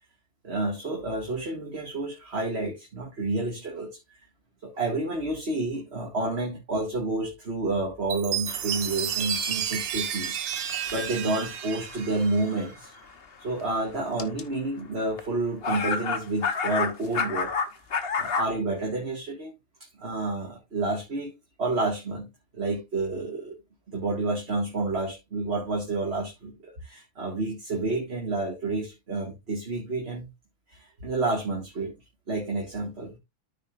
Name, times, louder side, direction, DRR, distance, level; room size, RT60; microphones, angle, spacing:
voice 1, 0.4-4.0 4.6-10.4 10.9-12.9 13.4-17.5 18.2-19.5 20.0-21.3 21.6-23.6 23.9-30.3 30.7-31.9 32.3-33.1, right 2 dB, 30° right, 2.0 m, -30 dB
Chime, 8.1-12.7, right 9 dB, 70° right, 1.6 m, -31 dB
sound 1, 8.5-13.6 14.2-14.4 15.2-15.3 15.6-18.5, left 5 dB, 40° left, 0.8 m, -31 dB
13.5 x 5.0 x 2.5 m
omnidirectional pair, 2.2 m